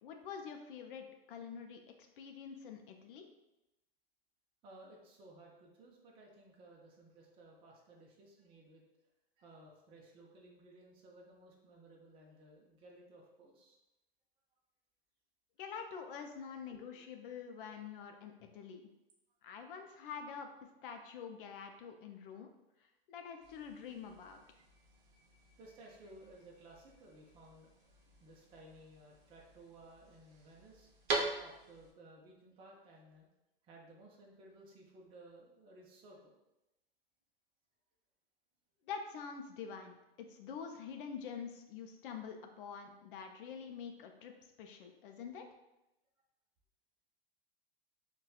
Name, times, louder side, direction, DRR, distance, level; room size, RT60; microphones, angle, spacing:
voice 1, 0.0-1.8 2.2-3.3 15.6-18.8 19.4-20.5 20.8-22.5 23.1-24.4 38.9-44.3 44.6-45.5, left 6 dB, 60° left, 4 dB, 0.5 m, -46 dB
voice 2, 4.6-8.8 9.4-13.8 16.7-17.0 25.6-30.9 31.4-33.3 33.6-36.3 44.8-44.9, right 1 dB, 20° right, -2 dB, 0.5 m, -58 dB
sound 1, 23.4-31.9, right 3 dB, 45° right, 0.8 m, -44 dB
4.0 x 2.3 x 2.3 m, 0.92 s
hypercardioid pair, 120°, 30 cm